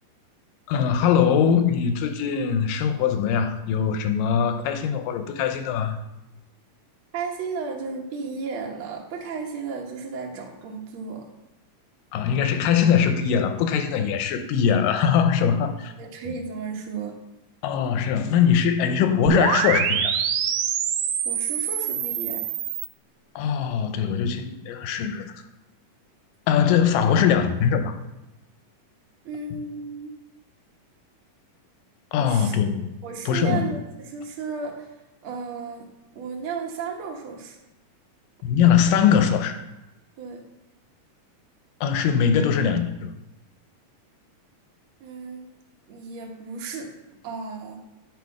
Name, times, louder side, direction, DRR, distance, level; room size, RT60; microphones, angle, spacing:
voice 1, 0.7-6.0 12.1-15.9 17.6-20.1 23.4-25.3 26.5-28.0 32.1-33.0 33.3-33.6 38.4-39.6 41.8-43.1, left 7 dB, 85° left, 2.4 m, -21 dB
voice 2, 7.1-11.3 16.0-17.1 21.2-22.4 29.2-30.1 32.2-32.6 33.0-34.9 35.2-35.9 36.1-37.6 40.2-40.4 45.0-45.5 45.9-46.9 47.2-47.8, right 5 dB, 60° right, 1.4 m, -34 dB
sound 1, 19.3-22.9, right 8 dB, 85° right, 1.6 m, -25 dB
9.3 x 4.9 x 4.8 m
omnidirectional pair, 3.8 m